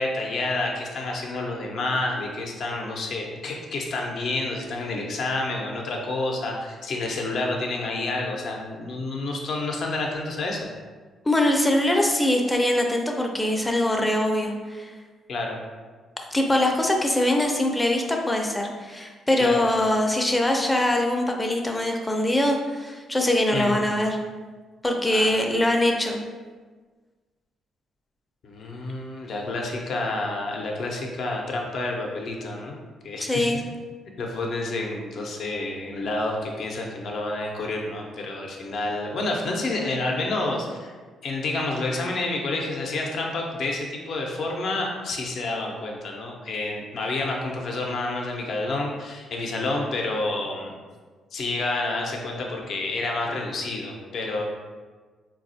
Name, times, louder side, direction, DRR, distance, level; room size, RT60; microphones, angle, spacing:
voice 1, 0.0-10.7 15.3-15.6 19.4-19.7 23.5-23.8 25.1-25.4 28.4-32.8 33.0-33.5 34.2-40.9 41.2-50.7 51.3-54.4, left 2 dB, 60° left, 0 dB, 0.6 m, -29 dB
voice 2, 11.3-14.9 16.3-24.2 24.8-26.2 33.2-33.6, left 1 dB, 15° left, 2 dB, 0.5 m, -23 dB
4.1 x 2.3 x 2.6 m, 1.4 s
cardioid pair, 90°, 0 cm